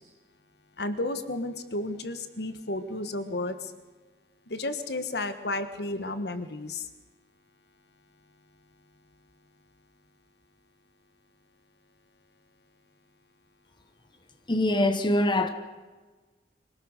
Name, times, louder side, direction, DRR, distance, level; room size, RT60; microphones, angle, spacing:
voice 1, 0.8-3.7 4.5-6.9, left 2 dB, 65° left, 1.4 m, -32 dB
voice 2, 14.5-15.5, left 1 dB, 25° left, 1.3 m, -23 dB
25.0 x 18.0 x 6.6 m
head